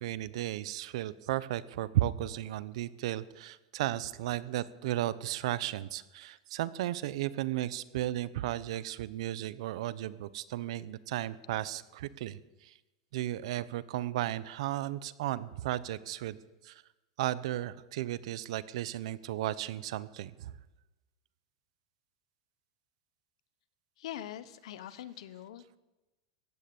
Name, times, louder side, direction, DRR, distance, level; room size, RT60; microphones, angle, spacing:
voice 1, 0.0-12.8 13.1-16.4 16.6-16.8 17.2-20.5, right 14 dB, 70° right, 18 dB, 0.9 m, -34 dB
voice 2, 24.0-25.8, left 11 dB, 75° left, 16 dB, 1.0 m, -43 dB
15.5 x 9.4 x 8.6 m, 1.1 s
supercardioid pair, 135°, 3 cm